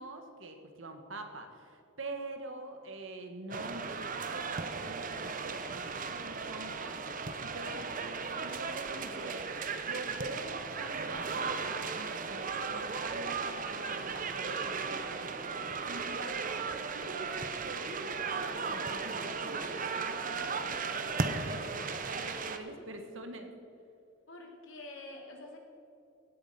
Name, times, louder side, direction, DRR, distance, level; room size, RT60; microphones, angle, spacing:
voice 1, 0.0-9.5 9.8-15.5 15.9-16.6 16.9-23.5, right 2 dB, 70° right, 5 dB, 1.6 m, -45 dB
sound 1, 3.5-22.6, right 5 dB, 40° right, 0.8 m, -36 dB
voice 2, 22.3-22.9 24.3-25.6, left 2 dB, 70° left, 0 dB, 2.8 m, -48 dB
16.5 x 8.8 x 5.9 m, 2.7 s
head